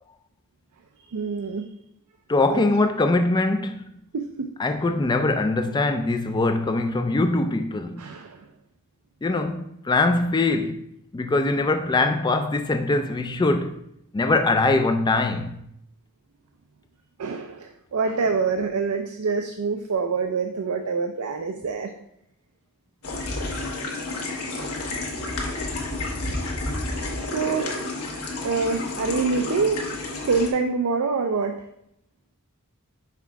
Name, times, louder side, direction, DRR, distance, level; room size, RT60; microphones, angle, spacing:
voice 1, 1.1-1.6 2.5-2.6 4.1-4.5 8.0-8.4 17.2-21.9 27.3-27.7 28.4-29.8 30.2-31.6, right 4 dB, 75° right, 0.5 m, -25 dB
voice 2, 2.3-3.9 4.6-8.0 9.2-10.8 11.1-13.8 14.1-15.6, left 2 dB, 20° left, 0.3 m, -22 dB
sound 1, 23.0-30.5, left 2 dB, 75° left, 1.3 m, -30 dB
5.8 x 3.6 x 4.6 m
head